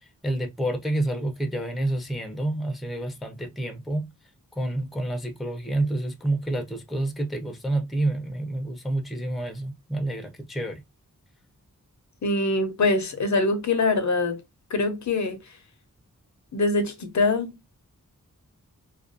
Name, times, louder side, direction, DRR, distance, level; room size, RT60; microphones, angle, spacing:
voice 1, 0.2-4.1 4.6-10.8, right 1 dB, ahead, 0.4 m, -28 dB
voice 2, 12.2-14.4 14.7-15.4 16.5-17.5, left 3 dB, 60° left, 0.5 m, -23 dB
2.3 x 2.1 x 2.4 m
wide cardioid pair, 100°, 34 cm